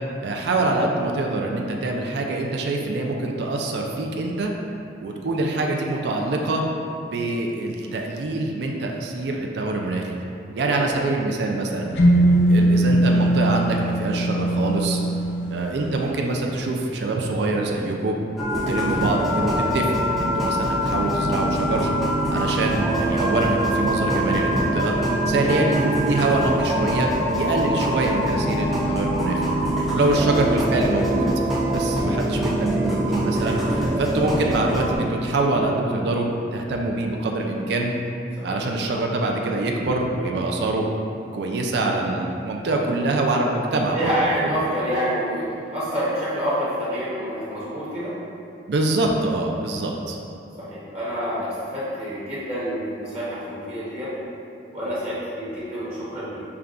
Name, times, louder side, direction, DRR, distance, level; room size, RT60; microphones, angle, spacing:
voice 1, 0.2-4.5 5.0-6.6 7.0-10.2 10.6-11.9 12.5-15.0 15.5-18.2 18.7-21.9 22.3-24.9 25.3-29.4 29.9-31.3 31.7-33.6 34.0-37.9 38.4-40.8 41.3-44.1 44.4-44.6 48.7-50.2, right 2 dB, 65° right, 1 dB, 0.4 m, -24 dB
sound 1, 12.0-15.8, right 1 dB, 75° left, 0.5 m, -20 dB
sound 2, 18.4-35.0, right 1 dB, ahead, 0.5 m, -23 dB
voice 2, 43.9-48.1 50.6-54.1 54.7-56.4, equal, 35° right, -10 dB, 0.9 m, -28 dB
6.7 x 2.3 x 2.4 m, 2.6 s
head